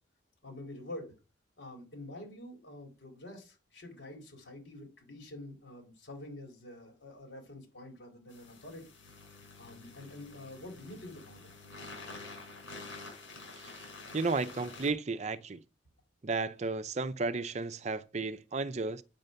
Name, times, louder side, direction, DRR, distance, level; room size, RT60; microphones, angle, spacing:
voice 1, 0.4-1.1 1.6-8.8 9.6-11.5, left 1 dB, 70° left, 4.2 m, -47 dB
sound 1, 8.3-14.9, left 3 dB, 85° left, 6.7 m, -48 dB
voice 2, 13.6-13.9 14.1-15.6 16.2-19.0, right 3 dB, 35° right, 0.5 m, -33 dB
9.0 x 5.4 x 7.7 m
head